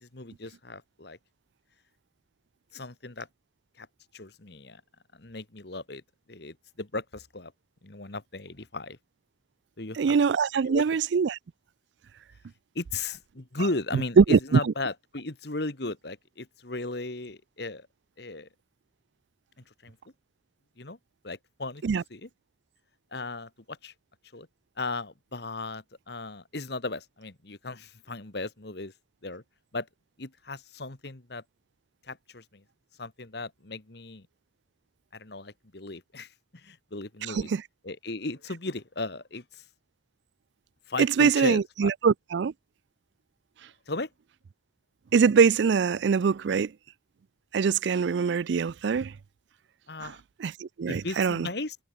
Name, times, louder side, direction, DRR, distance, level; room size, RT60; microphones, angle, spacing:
voice 1, 0.0-1.2 2.7-3.3 3.8-3.9 4.1-4.8 5.1-6.0 6.3-7.5 7.8-9.0 9.8-10.1 10.7-10.8 12.7-17.9 18.2-18.5 19.8-20.0 20.8-21.0 21.2-21.8 22.1-22.3 23.1-23.9 24.3-24.5 24.8-28.9 29.2-29.4 29.7-29.9 30.2-31.4 32.0-32.6 33.0-34.3 35.1-37.5 37.8-39.6 40.9-41.9 43.9-44.1 49.9-50.2 50.9-51.8, left 2 dB, 55° left, 1.6 m, -36 dB
voice 2, 10.0-11.4 14.2-14.6 21.8-22.0 37.3-37.6 41.0-42.5 45.1-46.7 47.5-49.1 50.0-50.1 50.4-51.5, right 6 dB, 65° right, 0.4 m, -23 dB
head